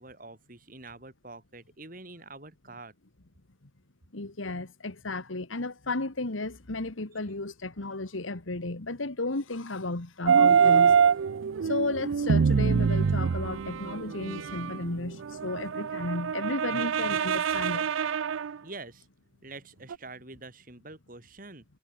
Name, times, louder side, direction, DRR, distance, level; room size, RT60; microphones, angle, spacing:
voice 1, 0.0-2.9 18.6-19.1 19.4-21.6, right 3 dB, 45° right, 3.6 m, -46 dB
voice 2, 4.1-11.0 11.6-17.9, left 2 dB, 90° left, 1.9 m, -33 dB
sound 1, 10.3-18.6 19.9-20.0, right 6 dB, 85° right, 0.4 m, -25 dB
head